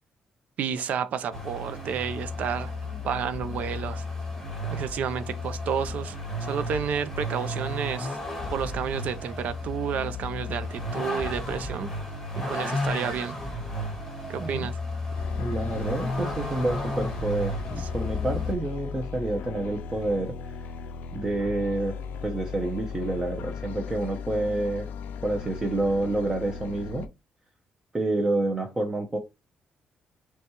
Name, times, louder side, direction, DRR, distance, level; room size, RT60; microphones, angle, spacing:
voice 1, 0.6-2.7 3.0-4.0 4.7-6.2 6.4-8.2 8.5-11.9 12.4-13.4 14.3-14.8 17.8-17.9, right 7 dB, 60° right, 0.5 m, -31 dB
Vehicle, 1.3-18.5, left 1 dB, 5° left, 1.2 m, -33 dB
sound 1, 15.1-27.1, left 5 dB, 90° left, 0.4 m, -37 dB
voice 2, 15.4-20.4 21.1-24.9 25.2-27.1 27.9-29.2, right 2 dB, 20° right, 0.6 m, -28 dB
5.8 x 2.3 x 2.9 m
cardioid pair, 155°, 3 cm